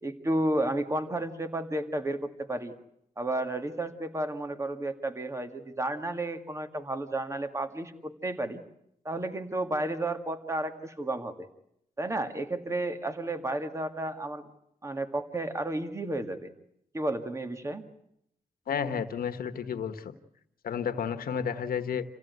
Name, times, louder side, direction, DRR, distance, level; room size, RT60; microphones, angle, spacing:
voice 1, 0.0-2.7 3.2-8.6 9.0-11.5 12.0-14.4 14.8-16.5 16.9-17.8, right 1 dB, 20° right, 8 dB, 2.1 m, -32 dB
voice 2, 18.7-20.1 20.6-22.0, left 7 dB, 85° left, 8 dB, 1.4 m, -31 dB
28.0 x 16.0 x 9.4 m, 0.75 s
cardioid pair, 95°, 15 cm